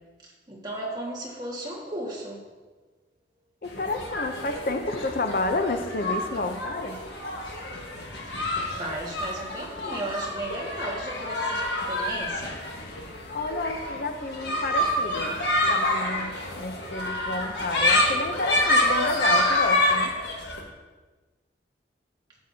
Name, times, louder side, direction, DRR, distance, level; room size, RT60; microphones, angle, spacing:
voice 1, 0.5-2.4 8.8-12.7, right 1 dB, 25° right, -3 dB, 1.6 m, -35 dB
voice 2, 3.6-7.0 13.3-15.4 15.7-20.1, left 2 dB, 50° left, 7 dB, 0.5 m, -30 dB
sound 1, 3.7-20.6, left 1 dB, 70° left, 1.4 m, -27 dB
11.5 x 8.1 x 2.7 m, 1.3 s
head